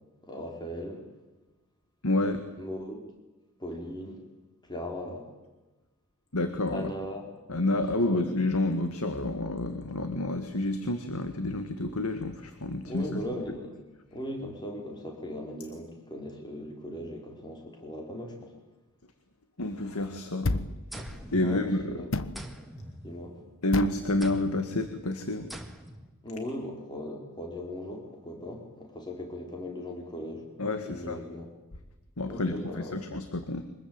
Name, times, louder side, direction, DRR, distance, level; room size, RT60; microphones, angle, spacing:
voice 1, 0.2-1.0 2.6-3.1 3.6-4.2 4.6-5.3 6.7-7.2 8.0-8.3 12.9-13.7 14.1-18.5 20.3-20.6 21.4-22.1 23.0-23.4 26.2-30.5 30.8-31.5 32.3-33.0, equal, 20° left, 2 dB, 4.7 m, -38 dB
voice 2, 2.0-2.4 6.3-6.9 7.5-13.2 19.6-20.5 21.3-21.9 23.6-25.5 30.6-31.2 32.2-33.6, left 2 dB, 85° left, 8 dB, 1.9 m, -29 dB
sound 1, 20.4-20.8 22.1-22.4 23.7-24.0, left 2 dB, 60° left, 1.2 m, -29 dB
sound 2, 20.9-22.0 22.3-23.6 24.2-24.7 25.5-26.1, equal, ahead, 2.2 m, -43 dB
24.5 x 20.5 x 9.0 m, 1.1 s
head